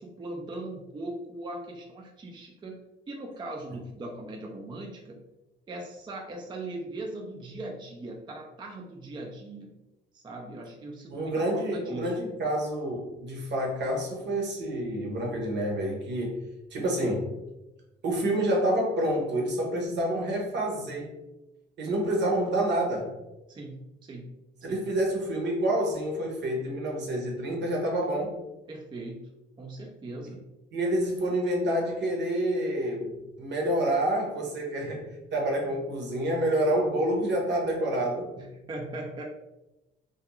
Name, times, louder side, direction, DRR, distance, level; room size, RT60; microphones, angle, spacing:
voice 1, 0.0-2.7 3.1-5.2 5.7-9.7 10.1-12.2 23.5-24.3 24.7-24.8 28.7-29.3 29.6-30.4 38.4-39.2, right 2 dB, 25° right, 0 dB, 0.4 m, -39 dB
voice 2, 11.1-16.4 16.7-17.3 18.0-21.1 21.8-23.1 24.6-28.3 30.7-33.1 33.4-35.0 35.3-38.3, right 1 dB, 60° right, 0 dB, 0.8 m, -28 dB
2.4 x 2.3 x 2.9 m, 0.98 s
cardioid pair, 90°, 20 cm